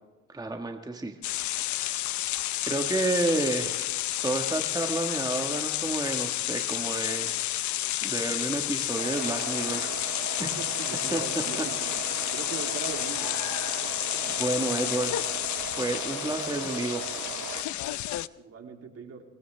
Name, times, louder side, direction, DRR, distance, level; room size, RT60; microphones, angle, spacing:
voice 1, 0.3-1.1 1.5-2.2 2.6-3.9 4.2-7.4 8.0-9.9 10.4-10.5 11.1-11.2 14.4-15.1 15.8-17.0, right 2 dB, 15° right, 4 dB, 1.4 m, -30 dB
sound 1, 1.2-18.3, left 14 dB, 70° left, 0.6 m, -31 dB
sound 2, 9.0-17.6, right 10 dB, 80° right, 1.2 m, -39 dB
voice 2, 10.4-11.9 12.3-13.4 14.1-14.3 18.3-19.2, right 5 dB, 50° right, 3 dB, 2.9 m, -40 dB
23.5 x 18.5 x 3.3 m, 1.2 s
cardioid pair, 90°, 30 cm